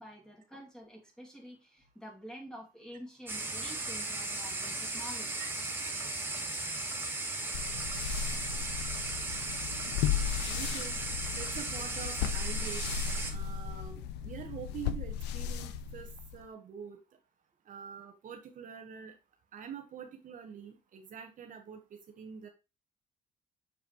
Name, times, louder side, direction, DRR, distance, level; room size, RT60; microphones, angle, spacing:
voice 1, 0.0-5.3, equal, 5° left, -1 dB, 2.6 m, -48 dB
sound 1, 3.3-13.3, right 2 dB, 10° right, 1.5 m, -36 dB
sound 2, 7.5-16.5, left 8 dB, 90° left, 0.6 m, -36 dB
voice 2, 10.5-11.0 11.3-12.8 13.3-17.0 17.7-19.1 19.5-21.8 22.2-22.5, right 7 dB, 50° right, 4 dB, 1.3 m, -45 dB
7.2 x 4.9 x 3.1 m, 0.27 s
cardioid pair, 110°, 17 cm